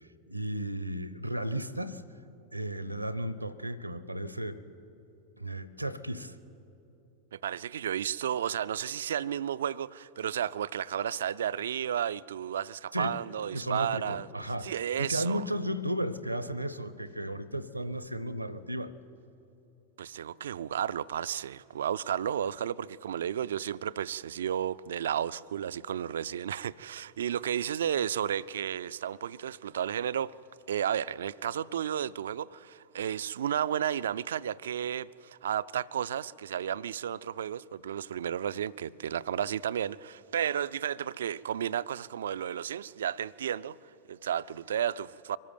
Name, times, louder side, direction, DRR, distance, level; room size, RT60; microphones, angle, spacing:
voice 1, 0.3-2.0 2.5-4.6 5.4-6.3 12.9-13.2 13.5-14.7 15.0-18.9, right 1 dB, 85° right, 0.7 m, -34 dB
voice 2, 7.3-14.3 14.6-15.4 20.0-30.3 30.7-43.8 44.1-45.4, right 9 dB, 65° right, 0.4 m, -32 dB
23.5 x 13.0 x 9.1 m
figure-of-eight pair, 90°, 0 cm